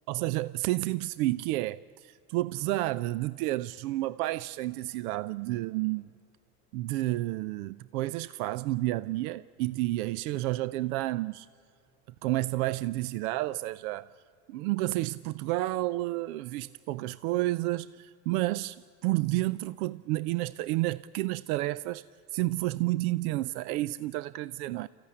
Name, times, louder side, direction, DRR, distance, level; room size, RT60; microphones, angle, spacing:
voice 1, 0.1-6.1 6.7-11.5 12.2-14.1 14.5-22.0 22.3-24.9, right 18 dB, 75° right, 0.5 m, -30 dB
28.5 x 15.0 x 9.8 m
supercardioid pair, 115°, 44 cm